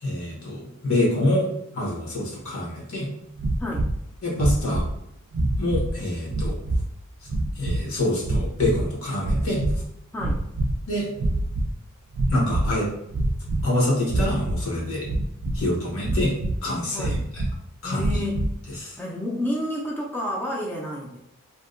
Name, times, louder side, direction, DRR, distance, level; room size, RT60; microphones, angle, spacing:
voice 1, 0.0-3.1 4.2-4.9 5.6-6.6 7.6-9.7 10.9-11.1 12.3-12.9 13.6-15.1 15.5-16.3 16.6-17.4 17.8-18.3 18.7-19.0, left 1 dB, 75° left, -3 dB, 0.9 m, -26 dB
sound 1, 3.4-4.0 4.3-5.0 5.3-5.9 6.3-6.9 7.3-7.8 8.2-8.9 9.2-9.8 10.1-10.8 11.1-11.7 12.1-12.7 13.1-13.7 14.1-14.6 15.1-15.7 16.0-16.6 17.0-17.5 18.0-18.5, right 1 dB, 85° right, 0.4 m, -25 dB
voice 2, 3.6-3.9 10.1-10.4 16.9-17.2 17.8-18.5 19.0-21.2, left 1 dB, 10° left, -2 dB, 0.3 m, -30 dB
2.6 x 2.1 x 2.5 m, 0.78 s
head